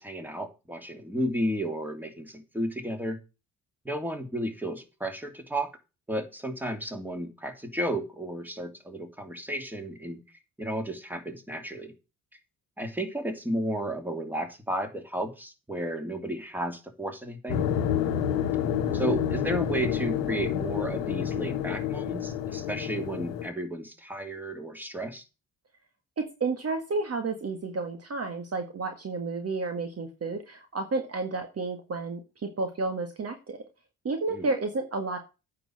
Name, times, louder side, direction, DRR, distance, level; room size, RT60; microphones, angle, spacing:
voice 1, 0.0-3.2 3.8-5.7 6.1-10.2 10.6-11.9 12.8-17.6 18.9-25.2 34.3-34.5, right 1 dB, 5° right, 5 dB, 2.9 m, -33 dB
sound 1, 17.5-23.5, left 9 dB, 75° left, 1.2 m, -29 dB
voice 2, 26.2-32.2 32.6-33.6 34.0-35.2, right 3 dB, 35° right, 6 dB, 1.8 m, -31 dB
9.0 x 5.8 x 7.8 m, 0.30 s
hypercardioid pair, 50°, 40 cm